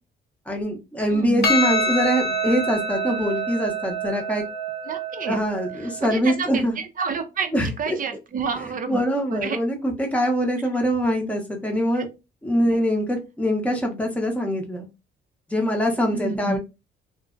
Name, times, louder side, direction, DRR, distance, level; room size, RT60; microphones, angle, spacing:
voice 1, 0.5-4.4 5.3-6.7 7.5-7.9 8.9-12.1 12.4-14.9 15.5-16.6, equal, 5° left, 2 dB, 0.7 m, -23 dB
voice 2, 1.1-1.5 4.9-5.4 5.8-9.0 9.3-9.6 11.9-12.0 12.6-12.8 16.1-16.6, right 5 dB, 45° right, 8 dB, 0.6 m, -29 dB
Percussion, 1.4-6.1, right 2 dB, 55° left, 0.6 m, -26 dB
2.5 x 2.1 x 2.4 m, 0.26 s
cardioid pair, 90°, 20 cm